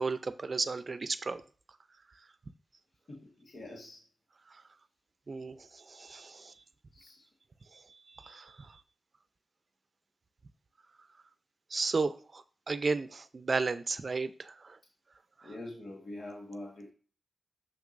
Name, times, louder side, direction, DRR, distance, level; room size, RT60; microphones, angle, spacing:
voice 1, 0.0-1.4 5.3-6.5 7.7-8.8 11.7-14.8, right 4 dB, 50° right, 13 dB, 0.5 m, -34 dB
voice 2, 3.1-4.0 6.9-7.3 15.4-16.9, left 1 dB, 70° left, -2 dB, 1.5 m, -45 dB
6.6 x 6.1 x 2.6 m, 0.40 s
cardioid pair, 65°, 0 cm